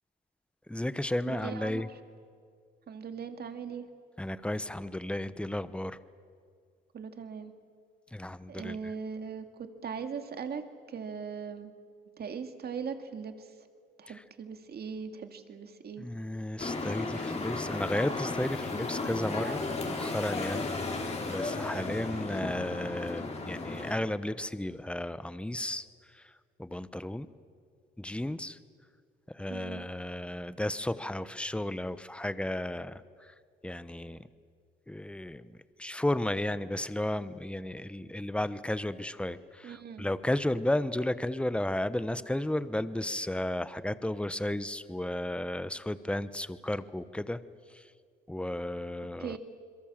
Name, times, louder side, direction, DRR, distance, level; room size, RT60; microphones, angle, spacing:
voice 1, 0.7-1.9 4.2-6.0 8.1-8.8 14.1-14.2 16.0-20.7 21.3-25.8 26.6-27.3 28.0-28.6 29.3-33.3 33.6-34.2 34.9-35.5 35.8-47.4 47.7-47.8 48.3-49.4, left 1 dB, 5° left, 14 dB, 0.9 m, -33 dB
voice 2, 1.2-1.9 2.9-3.9 6.9-7.5 8.5-10.6 10.9-11.7 12.2-13.5 14.0-16.1 29.5-29.8 39.6-40.1 49.2-49.4, right 6 dB, 55° right, 7 dB, 2.1 m, -39 dB
sound 1, 16.6-23.9, left 3 dB, 35° left, 3.8 m, -34 dB
26.5 x 22.5 x 7.5 m, 2.1 s
cardioid pair, 90°, 20 cm